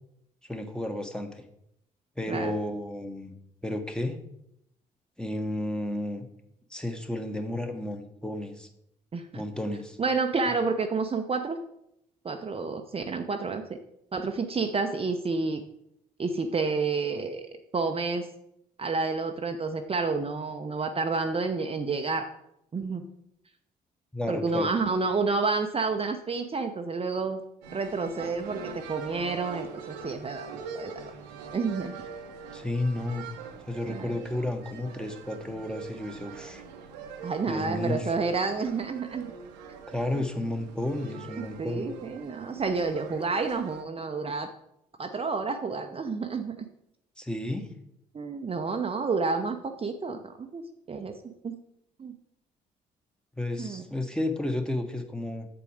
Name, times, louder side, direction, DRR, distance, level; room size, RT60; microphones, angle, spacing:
voice 1, 0.5-1.4 2.2-3.3 3.6-4.2 5.2-6.3 6.7-8.7 9.3-10.0 24.1-24.7 32.5-33.3 33.7-36.6 37.5-38.1 39.9-41.9 47.2-47.7 53.4-55.5, left 1 dB, 5° left, 6 dB, 1.3 m, -32 dB
voice 2, 9.1-9.4 10.0-11.6 12.2-13.6 14.1-15.6 16.2-18.3 18.8-22.3 22.7-23.1 24.3-27.4 27.7-31.1 31.5-31.9 33.8-34.1 37.2-39.3 41.6-44.5 45.0-46.6 48.1-51.6 52.0-52.1 53.6-53.8, right 4 dB, 25° right, 5 dB, 0.8 m, -30 dB
sound 1, 27.6-43.8, right 5 dB, 75° right, 0.9 m, -43 dB
8.2 x 7.0 x 5.0 m, 0.78 s
figure-of-eight pair, 45°, 21 cm